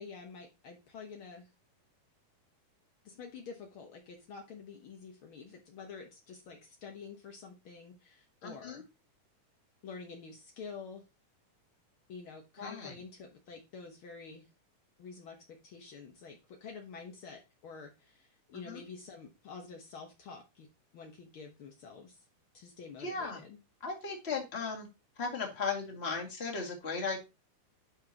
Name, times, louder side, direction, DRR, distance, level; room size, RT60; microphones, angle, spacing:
voice 1, 0.0-1.5 3.0-8.8 9.8-11.0 12.1-14.5 15.0-20.7 20.9-22.2 22.5-23.6, left 5 dB, 80° left, 3 dB, 1.1 m, -48 dB
voice 2, 8.4-8.8 12.6-12.9 18.5-18.8 23.0-23.4 23.8-24.9 25.2-27.2, left 4 dB, 25° left, 1 dB, 1.7 m, -36 dB
10.5 x 6.1 x 2.9 m, 0.26 s
omnidirectional pair, 4.1 m